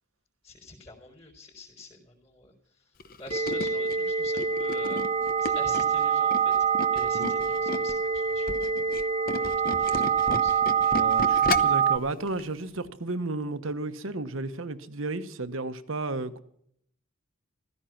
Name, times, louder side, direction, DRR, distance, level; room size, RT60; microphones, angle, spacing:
voice 1, 0.4-2.5 3.2-5.0 5.4-6.5 6.9-8.9 9.3-10.0 10.3-10.5, left 3 dB, 25° left, 4.1 m, -46 dB
Tools, 3.0-8.0 8.3-11.9 12.3-12.5 12.8-12.9, left 3 dB, 45° left, 0.8 m, -34 dB
sound 1, 3.3-12.0, right 7 dB, 30° right, 0.5 m, -25 dB
voice 2, 10.9-16.4, right 2 dB, 80° right, 1.1 m, -33 dB
15.5 x 14.5 x 5.9 m
head